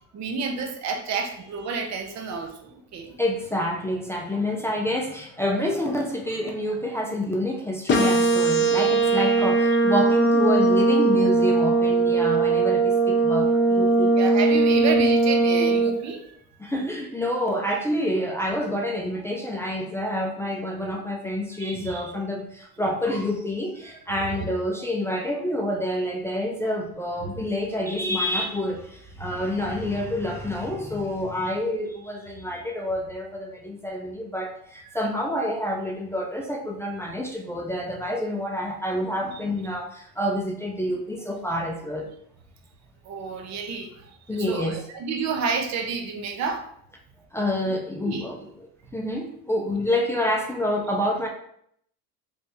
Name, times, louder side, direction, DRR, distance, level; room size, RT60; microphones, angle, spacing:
voice 1, 0.0-3.2 9.3-9.5 14.2-16.4 21.6-22.1 24.4-24.5 27.2-27.3 34.8-35.0 39.3-39.4 43.0-46.6 48.0-48.3, right 5 dB, 40° right, 4 dB, 0.7 m, -30 dB
voice 2, 3.2-14.1 16.6-42.1 44.3-44.8 47.3-48.4 48.9-51.3, left 1 dB, 5° left, -1 dB, 0.4 m, -28 dB
sound 1, 7.9-15.9, right 3 dB, 30° left, 0.8 m, -20 dB
3.3 x 3.3 x 2.7 m, 0.69 s
supercardioid pair, 105°, 40 cm